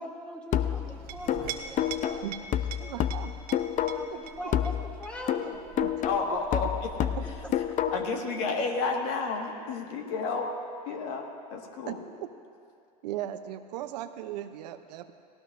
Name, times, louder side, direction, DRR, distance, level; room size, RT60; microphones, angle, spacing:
voice 1, 0.0-3.2 3.9-5.7, equal, 5° left, -2 dB, 2.4 m, -42 dB
sound 1, 0.5-4.2 4.5-8.2, left 10 dB, 40° left, 0.5 m, -29 dB
Chink clink, 0.8-8.0, right 7 dB, 45° right, 1.1 m, -44 dB
voice 2, 2.8-4.2 5.8-5.9 7.2-7.3 7.8-7.9 11.9-12.3 13.0-15.1, right 12 dB, 80° right, 10 dB, 0.6 m, -38 dB
voice 3, 6.0-6.9 7.9-10.5 10.9-12.0, left 4 dB, 65° left, 2 dB, 1.7 m, -31 dB
18.0 x 17.0 x 2.6 m, 2.4 s
hypercardioid pair, 95°, 21 cm